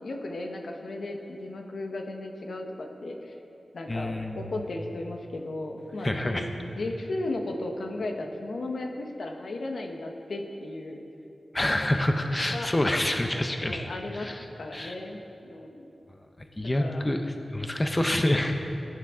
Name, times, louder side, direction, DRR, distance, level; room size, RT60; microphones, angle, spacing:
voice 1, 0.0-3.4 3.7-11.0 12.5-12.7 13.6-14.3 14.6-15.8 16.6-17.1, left 2 dB, 75° left, 3 dB, 1.2 m, -35 dB
voice 2, 3.9-4.4 6.0-6.5 11.5-14.4 14.7-14.9 16.6-18.5, left 1 dB, 20° left, 5 dB, 0.7 m, -27 dB
19.0 x 10.0 x 3.8 m, 2.9 s
wide cardioid pair, 90°, 0 cm